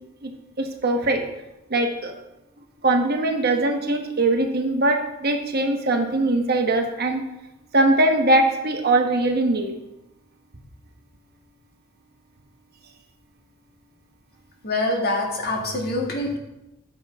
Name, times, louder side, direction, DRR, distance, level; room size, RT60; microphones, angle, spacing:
voice 1, 0.6-1.2 1.7-2.1 2.8-7.2 7.7-9.7, right 2 dB, 50° right, 4 dB, 1.1 m, -21 dB
voice 2, 14.6-16.4, left 2 dB, 50° left, -1 dB, 2.0 m, -25 dB
13.5 x 7.0 x 3.6 m, 0.95 s
head